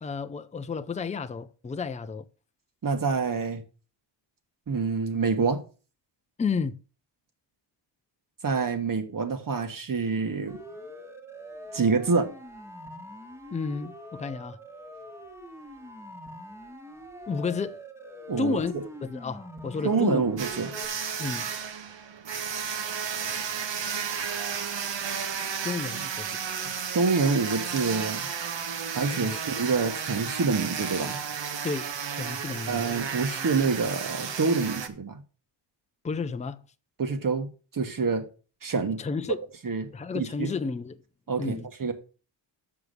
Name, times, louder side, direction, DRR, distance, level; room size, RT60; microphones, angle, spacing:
voice 1, 0.0-2.3 6.4-6.8 13.5-14.6 17.3-17.8 18.4-18.7 19.0-20.2 21.2-21.5 25.6-26.3 26.6-26.7 29.1-29.3 31.6-32.9 36.0-36.6 39.0-39.4 39.9-41.0 41.4-41.7, left 4 dB, 15° left, 0.4 m, -31 dB
voice 2, 2.8-3.6 4.7-5.6 8.4-10.6 11.7-12.3 18.3-18.6 19.8-20.7 26.9-28.3 28.9-31.2 32.7-35.2 37.0-37.5 37.7-38.3 38.6-39.0 39.6-39.9 40.1-40.5 41.3-41.9, right 4 dB, 45° right, 1.5 m, -26 dB
Siren, 10.5-20.9, equal, 5° right, 1.4 m, -43 dB
sound 1, 20.4-34.9, right 7 dB, 70° right, 1.3 m, -33 dB
6.8 x 6.1 x 6.6 m
wide cardioid pair, 135°, 45 cm